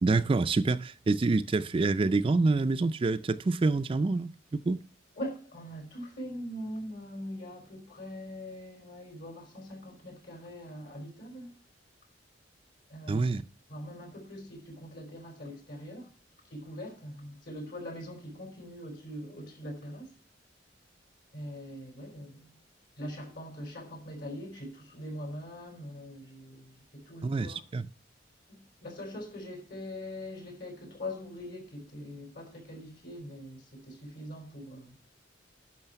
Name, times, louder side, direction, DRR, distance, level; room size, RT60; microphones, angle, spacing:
voice 1, 0.0-4.8 13.1-13.4 27.2-27.9, right 3 dB, 30° right, 0.4 m, -27 dB
voice 2, 5.2-11.5 12.9-13.3 13.7-16.1 16.5-20.1 21.3-22.5 23.0-27.6 28.5-34.9, equal, 65° left, 4.5 m, -42 dB
10.5 x 6.3 x 5.7 m
head